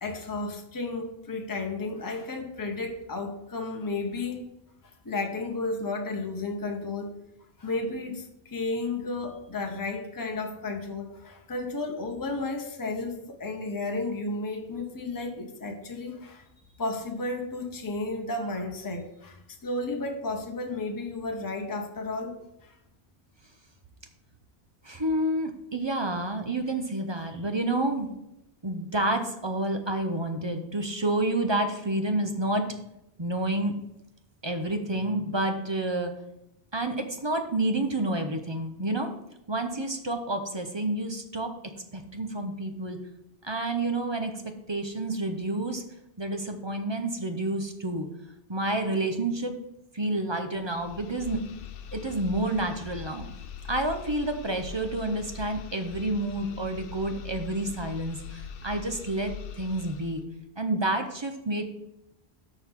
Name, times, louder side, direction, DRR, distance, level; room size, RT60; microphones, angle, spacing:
voice 1, 0.0-4.4 4.8-7.2 7.6-16.5 16.8-22.7, left 3 dB, 20° left, 3 dB, 0.9 m, -33 dB
voice 2, 24.8-28.1 28.6-32.7 33.2-33.7 34.4-36.1 36.7-39.1 39.5-41.5 41.9-43.0 43.4-45.8 46.2-48.1 48.5-49.6 49.9-51.4 51.9-53.3 53.7-60.2 60.6-61.6, right 1 dB, 30° right, 6 dB, 0.8 m, -29 dB
sound 1, 50.6-60.2, left 7 dB, 65° left, 0.8 m, -42 dB
13.0 x 4.6 x 3.7 m, 0.84 s
omnidirectional pair, 1.1 m